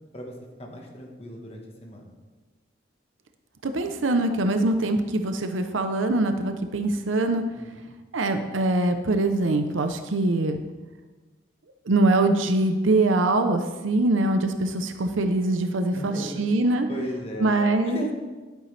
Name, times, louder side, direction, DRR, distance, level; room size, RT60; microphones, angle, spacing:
voice 1, 0.1-2.1 7.6-7.7 15.9-16.4 16.9-17.5 17.8-18.1, equal, 30° left, 0 dB, 1.3 m, -36 dB
voice 2, 3.6-7.4 8.1-10.6 11.9-16.9 17.4-18.1, right 2 dB, 85° right, 7 dB, 0.7 m, -23 dB
11.5 x 9.1 x 3.3 m, 1.3 s
head